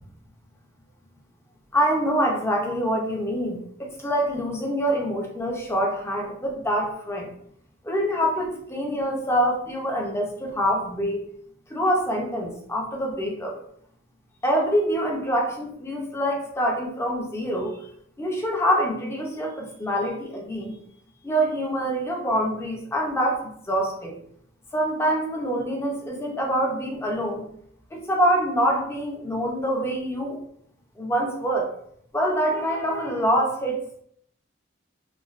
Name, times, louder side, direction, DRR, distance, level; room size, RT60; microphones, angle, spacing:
voice 1, 1.7-7.3 7.8-11.2 11.7-13.6 14.4-17.8 18.2-20.8 21.2-24.2 24.7-27.4 27.9-30.4 31.0-31.7 32.1-33.8, equal, 15° left, -1 dB, 0.5 m, -25 dB
3.1 x 2.2 x 2.4 m, 0.68 s
head